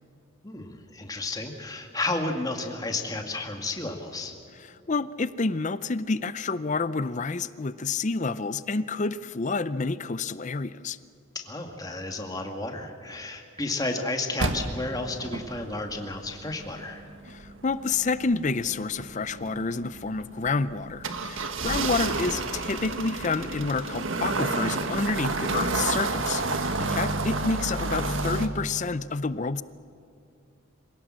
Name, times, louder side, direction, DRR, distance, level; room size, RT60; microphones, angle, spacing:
voice 1, 0.4-4.3 11.3-17.1 21.6-21.9, left 2 dB, 20° left, 3 dB, 2.0 m, -32 dB
voice 2, 4.7-11.0 17.3-29.6, left 4 dB, 35° left, 15 dB, 0.5 m, -29 dB
sound 1, 14.4-28.5, right 3 dB, 75° right, 1.5 m, -30 dB
26.0 x 17.5 x 7.6 m, 2.7 s
head